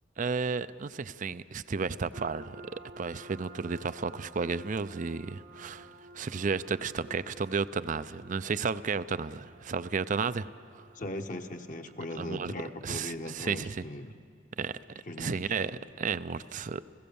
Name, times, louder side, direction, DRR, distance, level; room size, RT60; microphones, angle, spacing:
voice 1, 0.2-5.9 6.1-10.5 10.7-10.9 12.2-12.5 12.8-13.8 14.6-14.7 15.2-15.7 16.0-16.8, right 5 dB, 40° right, 15 dB, 0.5 m, -33 dB
sound 1, 2.1-13.4, right 2 dB, 60° right, 1.1 m, -53 dB
voice 2, 10.9-14.1 15.1-15.4, left 1 dB, 40° left, 5 dB, 1.0 m, -39 dB
30.0 x 16.5 x 7.0 m, 2.4 s
head